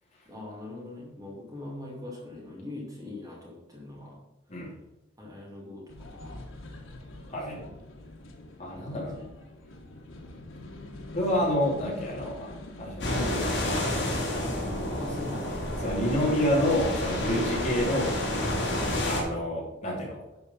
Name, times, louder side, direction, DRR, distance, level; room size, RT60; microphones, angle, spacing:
voice 1, 0.3-4.2 5.2-6.5 7.5-7.7 8.7-9.2 15.0-15.6 16.0-16.4, left 2 dB, 20° right, -4 dB, 2.5 m, -41 dB
sound 1, 5.9-14.5, left 1 dB, 85° left, 1.5 m, -45 dB
voice 2, 8.6-9.2 11.1-12.5 12.8-13.6 15.8-18.1 19.0-20.2, equal, 35° left, -4 dB, 3.0 m, -28 dB
sound 2, 13.0-19.2, left 1 dB, 60° left, 3.4 m, -29 dB
10.5 x 5.0 x 5.7 m, 0.97 s
head